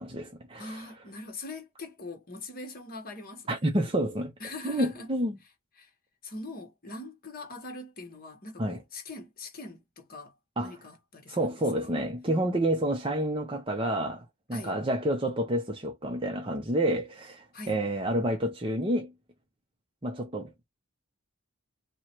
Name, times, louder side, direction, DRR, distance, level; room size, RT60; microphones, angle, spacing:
voice 1, 0.0-0.8 3.5-4.3 4.6-5.3 8.6-8.8 10.6-10.8 11.3-19.1 20.0-20.5, right 1 dB, 25° right, 0.8 m, -29 dB
voice 2, 0.5-3.6 4.4-5.1 5.4-5.5 5.8-5.9 6.2-12.1 14.5-14.8 17.5-17.8, left 2 dB, 40° left, 1.5 m, -42 dB
3.0 x 3.0 x 4.5 m
head